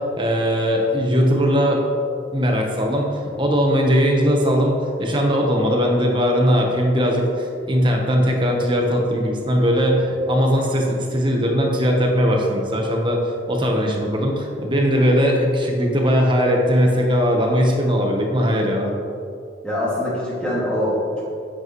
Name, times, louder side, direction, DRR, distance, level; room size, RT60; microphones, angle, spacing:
voice 1, 0.0-1.8 2.3-18.9, equal, 25° right, 1 dB, 1.2 m, -19 dB
voice 2, 19.6-21.2, left 1 dB, 5° left, -8 dB, 2.3 m, -23 dB
10.5 x 8.8 x 3.2 m, 2.5 s
head